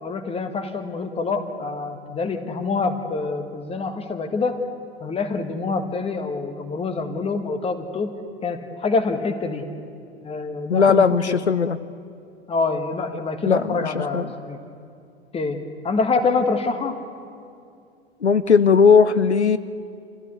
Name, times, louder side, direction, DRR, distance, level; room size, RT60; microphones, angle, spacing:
voice 1, 0.0-4.6 5.0-8.1 8.4-9.6 10.2-11.3 12.5-14.6 15.3-15.6 15.8-17.0, left 4 dB, 15° left, 7 dB, 1.7 m, -26 dB
voice 2, 10.7-11.8 13.5-14.3 18.2-19.6, left 6 dB, 85° left, 14 dB, 0.6 m, -17 dB
26.5 x 15.0 x 8.3 m, 2.5 s
figure-of-eight pair, 90°, 33 cm